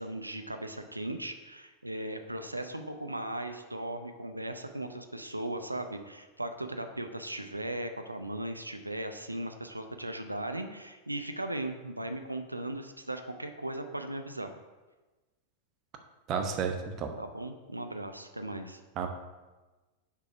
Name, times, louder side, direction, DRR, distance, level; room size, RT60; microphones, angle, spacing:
voice 1, 0.0-14.5 17.2-18.8, right 1 dB, 85° right, 6 dB, 0.6 m, -37 dB
voice 2, 16.3-17.1 19.0-19.1, right 6 dB, 35° right, 5 dB, 0.9 m, -31 dB
6.7 x 4.8 x 5.8 m, 1.2 s
figure-of-eight pair, 90°, 0 cm